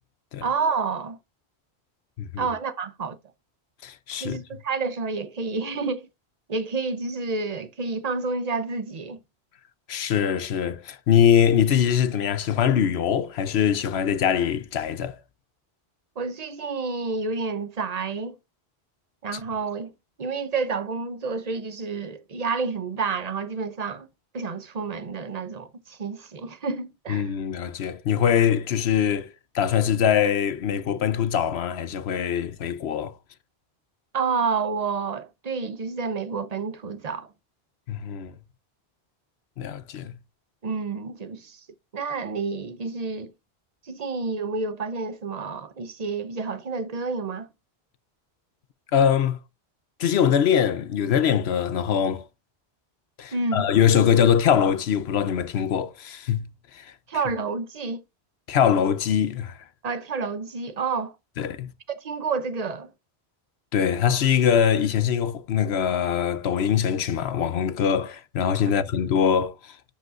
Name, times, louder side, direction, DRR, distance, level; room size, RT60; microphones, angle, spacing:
voice 1, 0.4-1.2 2.4-3.2 4.2-6.1 6.5-9.2 16.2-18.4 19.2-19.9 20.2-24.1 24.3-27.3 34.1-37.3 40.6-41.6 41.9-43.3 43.8-47.5 53.3-53.7 57.1-58.0 59.8-61.1 61.9-62.9, right 4 dB, 40° right, 0.8 m, -29 dB
voice 2, 3.8-4.4 9.9-15.2 27.1-33.2 37.9-38.3 39.6-40.1 48.9-49.4 50.0-52.3 53.2-56.5 56.7-56.9 58.5-59.6 61.4-61.7 63.7-69.8, left 8 dB, 75° left, 0.9 m, -23 dB
12.0 x 5.3 x 2.5 m
omnidirectional pair, 1.1 m